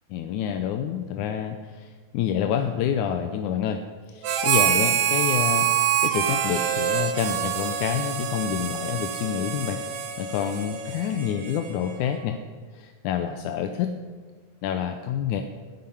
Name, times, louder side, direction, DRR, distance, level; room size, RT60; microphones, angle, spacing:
voice 1, 0.1-3.8 4.1-5.7 6.0-9.8 10.2-12.4 12.7-13.9 14.6-15.4, left 9 dB, 75° left, 7 dB, 2.0 m, -28 dB
Harmonica, 4.2-12.0, right 9 dB, 75° right, 2.6 m, -26 dB
11.0 x 9.4 x 9.8 m, 1.5 s
omnidirectional pair, 3.8 m